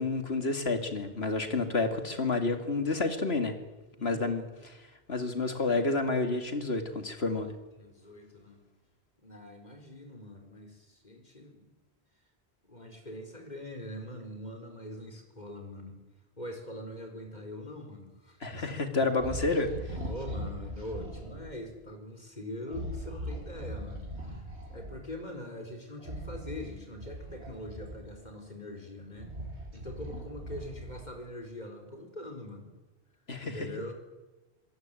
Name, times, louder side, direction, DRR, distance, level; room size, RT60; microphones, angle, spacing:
voice 1, 0.0-3.6 4.0-4.4 5.1-7.5 18.4-20.0 33.3-33.7, left 3 dB, 70° left, 8 dB, 2.5 m, -29 dB
voice 2, 4.0-4.5 7.8-8.6 9.2-11.7 12.7-16.0 16.4-18.7 19.0-19.1 20.0-29.3 29.7-32.7 33.4-33.9, left 1 dB, 40° left, 4 dB, 4.6 m, -43 dB
sound 1, 19.2-21.5 22.6-25.0 26.0-28.3 28.9-31.2, equal, 90° right, 5.3 m, -40 dB
25.5 x 18.0 x 9.1 m, 1.1 s
omnidirectional pair, 1.1 m